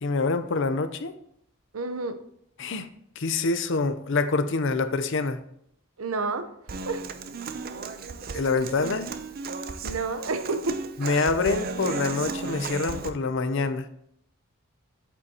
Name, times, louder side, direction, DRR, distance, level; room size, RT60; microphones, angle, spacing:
voice 1, 0.0-1.1 2.6-2.9 3.2-5.4 8.3-9.1 11.0-13.9, left 3 dB, 60° left, 0.6 m, -26 dB
voice 2, 1.7-2.2 6.0-6.5 6.9-7.1 8.3-8.4 9.8-10.8, right 3 dB, 80° right, 0.8 m, -30 dB
Human voice / Acoustic guitar, 6.7-13.1, right 4 dB, 45° right, 0.5 m, -35 dB
8.2 x 7.9 x 2.9 m
head